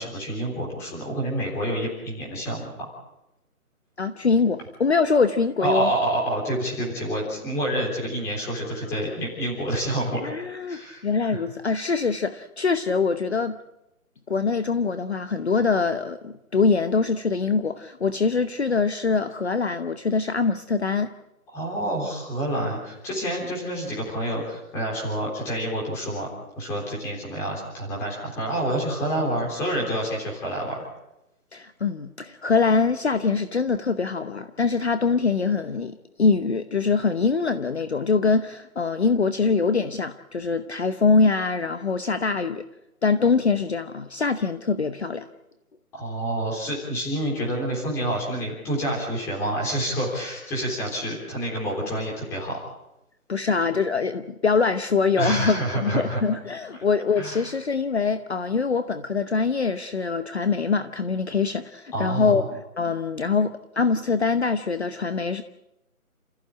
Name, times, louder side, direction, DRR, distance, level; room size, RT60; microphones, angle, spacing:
voice 1, 0.0-2.9 5.6-10.3 10.7-11.0 11.3-11.4 21.5-26.3 26.6-30.9 45.9-52.6 55.1-56.2 57.2-57.5 61.9-62.4, right 1 dB, 5° left, 3.6 m, -28 dB
voice 2, 4.0-5.9 10.2-13.6 14.3-21.1 31.5-42.6 43.0-45.3 53.3-65.4, left 4 dB, 45° left, 1.0 m, -23 dB
29.5 x 15.0 x 8.7 m
hypercardioid pair, 175°, 44 cm